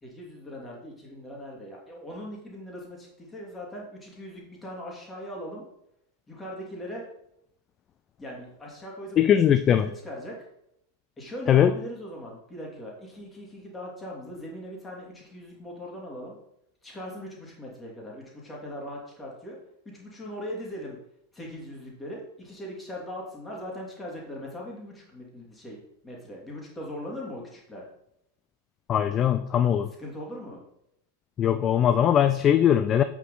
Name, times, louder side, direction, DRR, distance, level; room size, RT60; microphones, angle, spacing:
voice 1, 0.0-5.7 6.3-7.1 8.2-10.5 11.2-16.4 16.8-19.6 19.8-21.0 21.3-27.8 30.0-30.6, equal, 10° left, -2 dB, 2.7 m, -40 dB
voice 2, 9.2-9.8 11.5-11.7 28.9-29.9 31.4-33.0, left 9 dB, 30° left, 11 dB, 0.4 m, -20 dB
8.2 x 6.1 x 3.8 m, 0.79 s
figure-of-eight pair, 90°, 0 cm